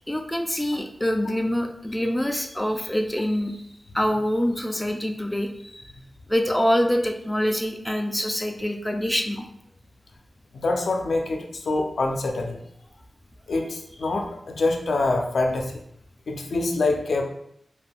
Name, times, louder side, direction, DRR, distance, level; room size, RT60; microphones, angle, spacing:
voice 1, 0.1-3.6 3.9-5.9 6.3-9.4, equal, 10° left, 4 dB, 0.3 m, -25 dB
voice 2, 10.5-12.6 13.5-15.8 16.3-17.2, left 2 dB, 80° left, 2 dB, 0.4 m, -25 dB
2.4 x 2.2 x 3.4 m, 0.70 s
wide cardioid pair, 75°, 0 cm